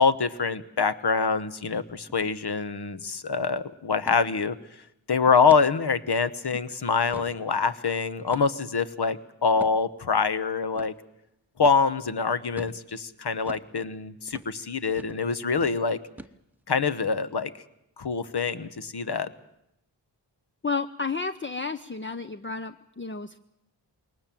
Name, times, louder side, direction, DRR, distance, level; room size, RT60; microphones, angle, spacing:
voice 1, 0.0-4.6 5.1-10.9 11.6-16.0 16.7-17.5 18.0-19.3, left 5 dB, 55° left, 13 dB, 1.2 m, -25 dB
sound 1, 2.1-2.3 2.6-2.7 3.1-3.4 4.1-4.3 4.7-4.9 5.5-5.7 6.2-6.3 6.8-7.4 8.3-8.7 9.6-9.8 10.8-10.9 11.6-11.8 12.6-12.8 13.5-13.7 14.3-14.5 15.0-15.2 15.5-15.8 16.2-16.6, equal, 5° right, 1.0 m, -44 dB
voice 2, 20.6-23.4, left 4 dB, 25° left, 9 dB, 0.7 m, -32 dB
21.5 x 19.0 x 7.6 m, 0.85 s
cardioid pair, 45°, 48 cm